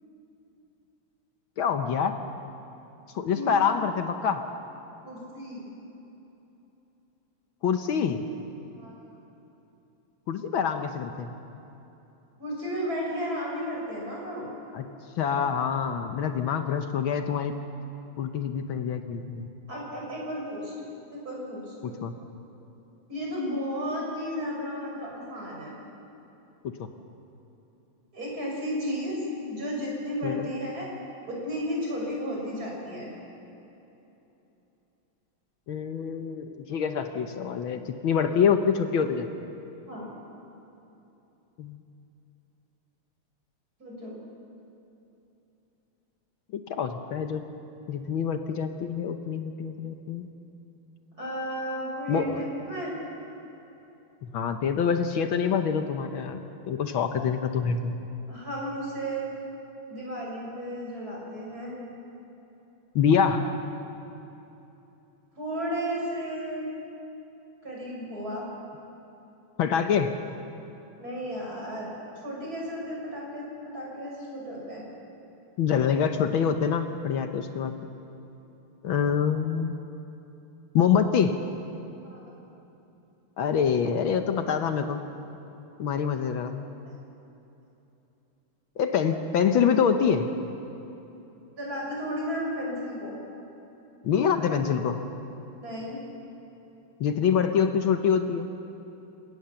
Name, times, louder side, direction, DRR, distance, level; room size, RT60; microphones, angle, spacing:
voice 1, 1.6-2.2 3.1-4.4 7.6-8.3 10.3-11.3 14.7-14.8 15.2-17.6 18.2-19.5 21.8-22.1 26.8-26.9 30.2-30.5 35.7-39.5 41.6-41.8 46.7-47.4 47.9-50.3 52.1-52.4 54.2-57.9 62.9-63.5 69.6-70.1 75.6-77.7 78.8-79.7 80.7-81.3 83.4-85.0 85.8-86.6 88.8-90.3 94.0-95.0 97.0-98.5, left 7 dB, 70° left, 7 dB, 1.7 m, -26 dB
voice 2, 5.0-5.7 8.7-9.1 12.4-14.5 19.7-21.9 23.1-25.7 28.1-30.9 31.2-33.1 39.9-40.1 43.8-44.1 51.2-52.9 58.3-59.3 59.9-61.8 65.4-66.7 67.6-68.5 71.0-74.8 82.0-82.3 86.8-86.9 91.6-93.2 95.6-96.0, equal, 40° right, -3 dB, 6.7 m, -33 dB
29.5 x 17.5 x 7.0 m, 3.0 s
omnidirectional pair, 2.4 m